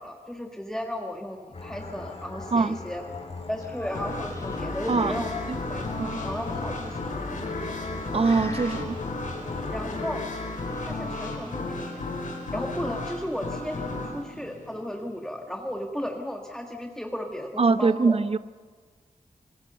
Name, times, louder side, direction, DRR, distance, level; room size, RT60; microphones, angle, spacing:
voice 1, 0.0-3.0 3.5-5.3 5.7-7.1 9.7-10.2 10.8-12.0 12.5-18.2, equal, 5° left, 2 dB, 1.6 m, -35 dB
sound 1, 1.5-10.0, left 3 dB, 50° left, 2.8 m, -40 dB
sound 2, 3.6-5.3 6.2-7.0 7.6-8.0 8.2-8.8 10.2-10.9, left 2 dB, 25° left, 2.4 m, -44 dB
sound 3, 3.9-15.4, left 2 dB, 75° left, 4.7 m, -34 dB
voice 2, 4.9-5.2 6.0-6.2 8.1-9.0 17.6-18.4, right 4 dB, 45° right, 14 dB, 0.7 m, -23 dB
26.5 x 20.5 x 6.8 m, 1.5 s
wide cardioid pair, 105°, 13 cm